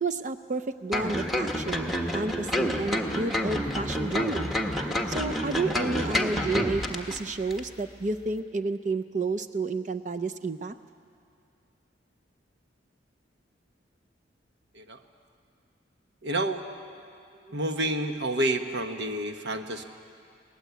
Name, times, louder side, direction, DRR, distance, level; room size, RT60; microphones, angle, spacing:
voice 1, 0.0-4.5 5.1-10.7, right 3 dB, 40° right, 8 dB, 0.5 m, -31 dB
sound 1, 0.9-7.2 7.5-7.6, equal, ahead, 1.2 m, -29 dB
voice 2, 16.2-16.6 17.4-19.8, right 1 dB, 65° right, 6 dB, 1.3 m, -29 dB
22.5 x 18.5 x 8.3 m, 2.4 s
head